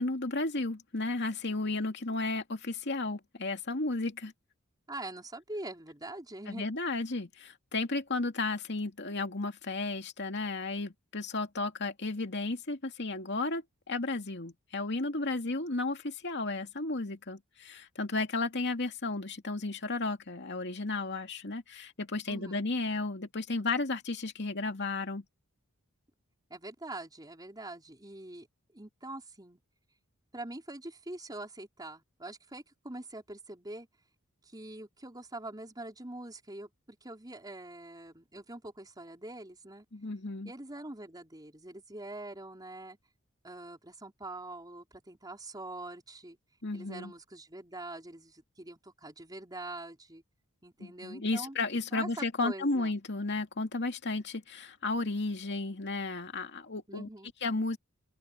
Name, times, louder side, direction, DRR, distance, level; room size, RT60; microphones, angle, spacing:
voice 1, 0.0-4.3 6.5-25.2 39.9-40.5 46.6-47.1 50.8-57.1 57.4-57.8, left 3 dB, 55° left, 2.5 m, -33 dB
voice 2, 4.9-6.7 22.3-22.6 26.5-28.5 28.7-29.6 30.3-33.9 34.4-39.8 40.4-43.0 43.4-46.4 46.7-50.2 50.6-51.6 51.9-52.9 56.9-57.3, right 2 dB, 20° right, 4.7 m, -44 dB
open air
head